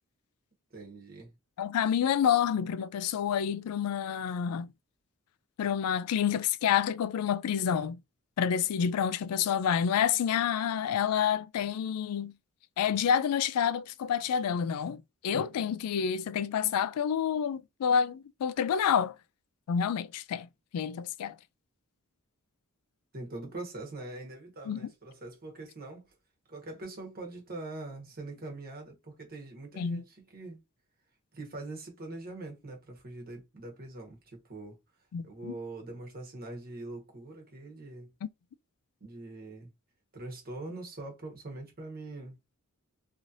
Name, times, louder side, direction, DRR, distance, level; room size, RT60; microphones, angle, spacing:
voice 1, 0.7-1.3 23.1-26.1 26.5-30.6 31.3-34.8 35.2-38.1 39.0-39.7 40.1-42.4, right 2 dB, 45° right, 1.2 m, -43 dB
voice 2, 1.6-4.7 5.6-8.0 8.4-12.3 12.8-19.2 19.7-20.5 20.7-21.4 24.7-24.9 29.8-30.0 35.1-35.5, left 8 dB, 85° left, 0.3 m, -28 dB
3.1 x 2.8 x 2.5 m
head